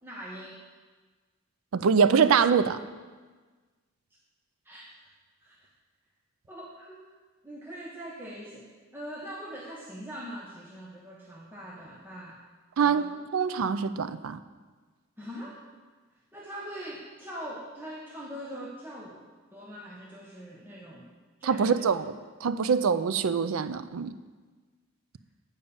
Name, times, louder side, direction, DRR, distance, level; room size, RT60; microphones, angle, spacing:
voice 1, 0.0-0.6 4.6-5.0 5.4-5.7 6.5-7.2 7.4-8.7 8.9-12.4 12.8-13.2 15.2-15.6 16.3-21.1 21.4-22.0 22.7-22.8, equal, 10° right, -4 dB, 0.9 m, -42 dB
voice 2, 1.7-2.8 12.8-14.4 21.4-22.1 22.4-24.1, right 6 dB, 85° right, 13 dB, 0.4 m, -24 dB
8.7 x 5.3 x 7.0 m, 1.4 s
head